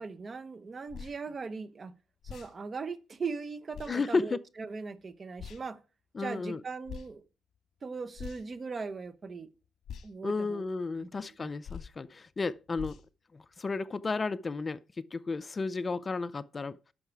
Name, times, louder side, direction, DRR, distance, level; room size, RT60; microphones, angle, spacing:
voice 1, 0.0-1.9 2.2-5.8 6.2-7.2 7.8-9.5 10.0-10.6 11.0-11.1 11.4-11.5, right 4 dB, 35° right, 1.0 m, -39 dB
sound 1, 0.9-1.2 2.2-2.5 3.7-3.9 5.4-5.6 6.8-7.1 8.1-8.6 9.8-10.1 11.6-11.9 12.7-13.1, left 7 dB, 65° left, 1.6 m, -43 dB
voice 2, 3.9-4.4 6.2-6.6 10.2-13.0 13.3-16.8, left 4 dB, 30° left, 0.4 m, -33 dB
11.0 x 6.5 x 4.7 m
cardioid pair, 90°, 0 cm